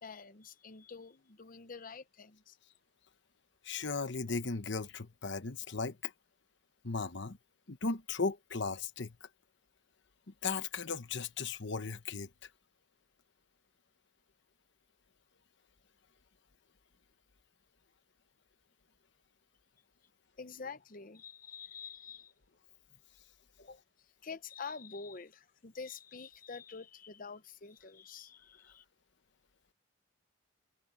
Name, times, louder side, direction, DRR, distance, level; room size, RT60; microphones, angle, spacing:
voice 1, 0.0-2.6 20.4-22.3 23.6-23.8 24.2-28.8, left 5 dB, 40° left, 0.8 m, -47 dB
voice 2, 3.6-6.1 6.8-7.4 7.7-9.1 10.4-12.3, left 4 dB, 60° left, 1.1 m, -36 dB
head